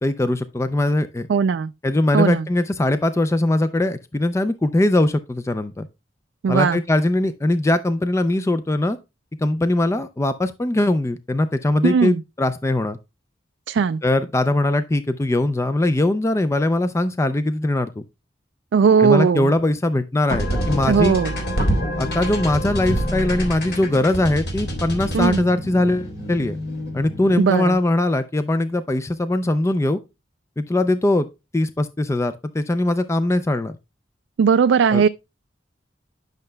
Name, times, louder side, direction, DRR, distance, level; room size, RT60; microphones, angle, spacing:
voice 1, 0.0-1.3 1.8-5.9 6.5-9.0 9.4-13.0 14.0-18.0 19.0-21.2 22.0-26.6 26.9-30.0 30.6-31.3 31.5-33.7 34.9-35.0, left 1 dB, 15° left, 0.4 m, -21 dB
voice 2, 1.3-1.7 2.1-2.4 6.4-6.8 11.8-12.2 13.7-14.0 18.7-19.5 20.9-21.3 25.1-25.4 27.4-27.8 34.4-35.1, right 6 dB, 80° right, 0.3 m, -18 dB
sound 1, 20.3-27.6, equal, 65° left, 3.3 m, -26 dB
10.5 x 6.5 x 2.2 m
head